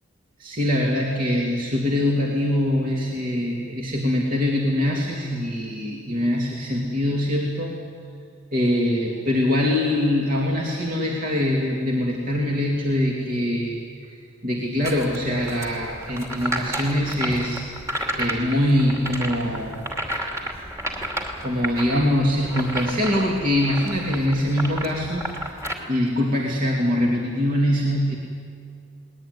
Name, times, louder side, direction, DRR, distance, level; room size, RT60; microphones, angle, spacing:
voice 1, 0.4-7.7 8.5-13.8 14.4-17.6 18.2-19.8 21.4-25.3 25.9-28.2, left 1 dB, 45° right, -2 dB, 2.9 m, -23 dB
sound 1, 14.8-25.7, right 1 dB, 15° right, 2.7 m, -32 dB
21.5 x 19.5 x 9.6 m, 2.2 s
head